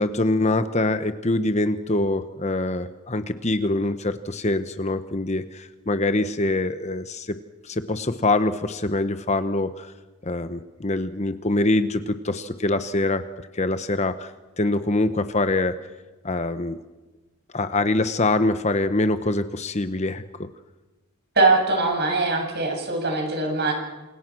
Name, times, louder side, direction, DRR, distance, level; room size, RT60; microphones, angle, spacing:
voice 1, 0.0-7.4 7.6-9.9 10.2-13.2 13.5-14.3 14.6-15.8 16.2-16.8 17.5-20.5, left 2 dB, 30° left, 10 dB, 1.0 m, -24 dB
voice 2, 21.4-23.7, right 3 dB, 45° right, 2 dB, 7.9 m, -21 dB
28.5 x 27.5 x 6.2 m, 1.1 s
head